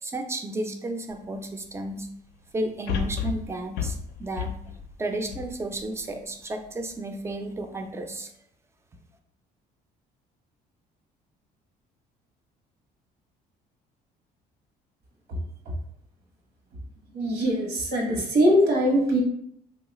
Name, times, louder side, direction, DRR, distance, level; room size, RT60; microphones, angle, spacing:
voice 1, 0.0-2.1 2.5-4.6 5.0-8.3, right 2 dB, 15° right, 5 dB, 0.4 m, -33 dB
sound 1, 1.1-1.2 2.9-6.2 6.7-6.8, left 7 dB, 80° left, 0.5 m, -32 dB
voice 2, 17.1-19.2, equal, 75° right, 0 dB, 1.0 m, -22 dB
3.2 x 2.3 x 3.0 m, 0.71 s
cardioid pair, 110°, 17 cm